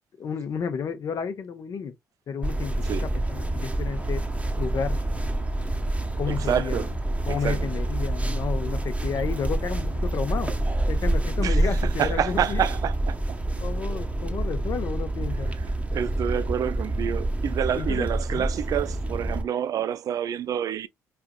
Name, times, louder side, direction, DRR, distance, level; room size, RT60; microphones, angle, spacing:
voice 1, 0.2-1.9 2.3-4.2 4.6-5.0 6.2-6.8 7.3-10.5 10.9-12.6 13.6-15.5 17.7-18.5, left 6 dB, 45° left, 0.8 m, -32 dB
sound 1, 2.4-19.4, right 1 dB, 15° right, 1.0 m, -27 dB
voice 2, 6.3-6.9 7.3-7.7 11.4-13.4 15.6-15.7 15.9-20.9, right 9 dB, 45° right, 0.5 m, -28 dB
4.7 x 3.4 x 2.2 m
figure-of-eight pair, 45°, 8 cm